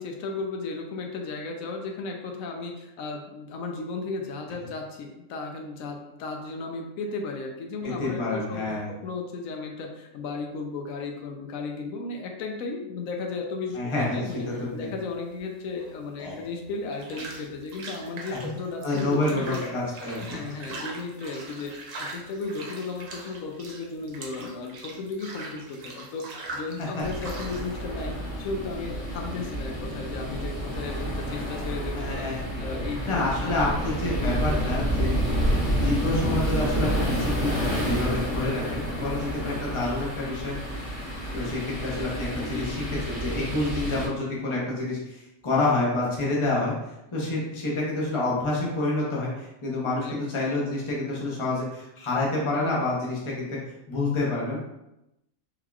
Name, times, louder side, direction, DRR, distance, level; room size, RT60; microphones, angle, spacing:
voice 1, 0.0-14.4 14.7-19.6 20.2-32.2 32.6-34.6 34.9-35.0 35.3-35.6 42.1-42.9 50.0-50.2, left 3 dB, 85° left, 2 dB, 1.0 m, -35 dB
voice 2, 7.8-8.9 13.7-14.9 16.2-16.4 18.8-20.4 31.9-32.4 33.1-35.2 35.7-40.6 41.3-42.8 43.1-46.7 47.1-53.6 53.9-54.6, left 2 dB, 30° left, -4 dB, 0.7 m, -28 dB
sound 1, 14.3-29.1, right 2 dB, 60° right, 0.4 m, -42 dB
sound 2, 27.0-44.1, equal, 45° left, 1.7 m, -29 dB
3.8 x 2.9 x 2.3 m, 0.89 s
omnidirectional pair, 1.4 m